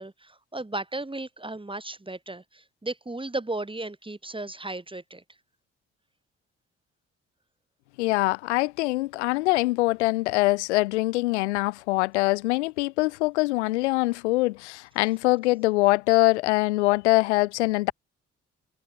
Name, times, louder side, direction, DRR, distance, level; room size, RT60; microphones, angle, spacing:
voice 1, 0.0-5.2, right 2 dB, 15° right, 6.8 m, -35 dB
voice 2, 8.0-17.9, left 21 dB, 75° left, 0.7 m, -23 dB
figure-of-eight pair, 40°, 35 cm